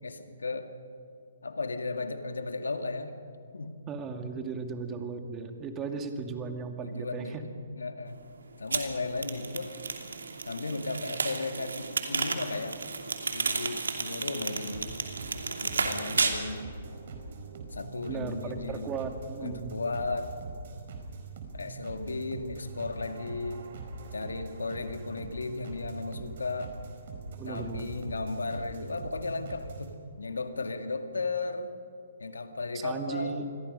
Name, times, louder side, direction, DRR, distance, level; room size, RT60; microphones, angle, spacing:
voice 1, 0.0-0.7 1.4-3.1 3.5-3.8 5.9-6.0 6.2-6.4 6.8-7.5 7.7-8.2 8.6-9.8 10.4-12.8 13.3-15.0 15.5-16.6 17.7-18.9 19.4-20.3 21.5-23.7 24.1-26.8 27.4-31.8 32.2-33.4, left 3 dB, 85° left, 7 dB, 2.1 m, -35 dB
voice 2, 3.9-7.4 18.1-19.8 27.4-27.9 32.7-33.5, right 5 dB, 20° right, 5 dB, 2.3 m, -36 dB
sound 1, 8.7-16.3, right 4 dB, 80° right, 2.8 m, -32 dB
sound 2, 14.7-29.9, right 3 dB, 55° right, 4.4 m, -43 dB
28.5 x 22.0 x 5.5 m, 2.5 s
hypercardioid pair, 135°, 0 cm